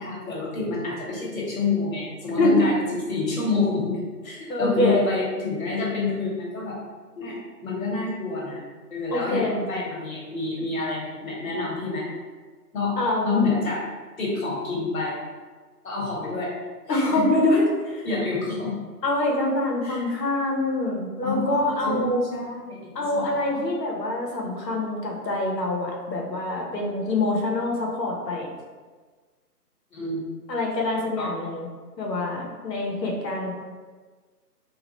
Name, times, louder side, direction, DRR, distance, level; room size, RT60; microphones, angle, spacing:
voice 1, 0.0-4.0 4.2-6.8 7.1-7.3 7.6-8.6 8.9-12.0 12.7-12.9 13.2-13.8 14.2-15.2 15.8-16.5 16.9-17.3 18.0-18.8 19.8-20.0 21.2-23.6 29.9-30.2 31.1-31.3, left 3 dB, 55° left, -4 dB, 1.2 m, -28 dB
voice 2, 4.5-5.1 9.1-9.6 13.0-13.5 16.9-18.1 19.0-22.3 22.9-28.5 30.5-31.7 32.0-33.5, left 2 dB, 90° left, -1 dB, 1.0 m, -25 dB
3.0 x 2.4 x 3.0 m, 1.4 s
hypercardioid pair, 165°, 49 cm